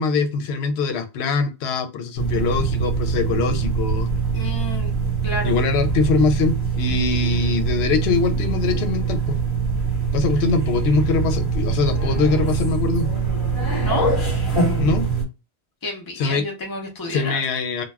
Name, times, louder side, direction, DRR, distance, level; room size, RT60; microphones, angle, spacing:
voice 1, 0.0-4.1 5.4-9.4 10.1-13.1 14.8-15.1 16.2-16.5 17.1-17.8, left 4 dB, 80° left, 7 dB, 0.8 m, -22 dB
sound 1, 2.2-15.2, right 5 dB, 55° left, 1.1 m, -23 dB
voice 2, 4.3-4.9 5.2-5.6 13.8-14.2 15.8-17.4, left 2 dB, 25° left, 0 dB, 0.5 m, -30 dB
2.3 x 2.2 x 3.2 m, 0.27 s
omnidirectional pair, 1.1 m